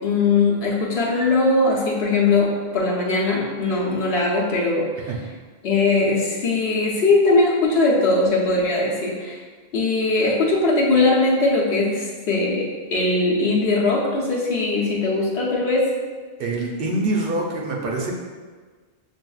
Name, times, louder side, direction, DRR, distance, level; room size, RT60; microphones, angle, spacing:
voice 1, 0.0-5.1 5.6-9.4 9.7-15.9, left 3 dB, 80° left, -4 dB, 1.1 m, -20 dB
voice 2, 16.4-18.1, right 2 dB, 65° right, -1 dB, 0.8 m, -24 dB
6.1 x 2.5 x 2.3 m, 1.5 s
omnidirectional pair, 1.1 m